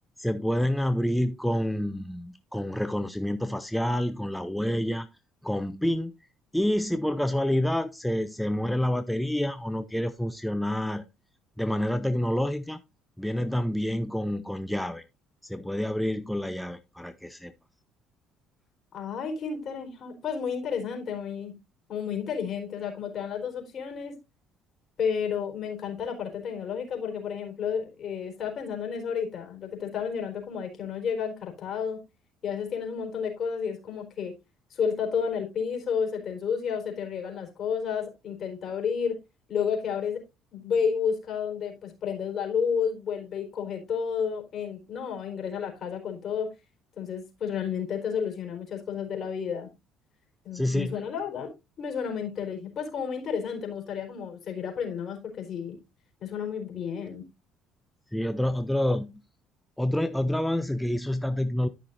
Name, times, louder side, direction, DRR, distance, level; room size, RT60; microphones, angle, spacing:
voice 1, 0.2-5.1 5.4-6.1 6.5-11.0 11.6-12.8 13.2-15.0 15.4-17.5 50.5-51.0 58.1-59.2 59.8-61.7, left 1 dB, 5° left, 0.7 m, -28 dB
voice 2, 18.9-21.5 21.9-24.2 25.0-32.0 32.4-34.3 34.7-39.2 39.5-40.2 40.5-46.5 47.0-49.7 50.4-55.8 56.2-57.2, left 7 dB, 50° left, 4.2 m, -31 dB
13.0 x 6.1 x 2.6 m
supercardioid pair, 80°, 0 cm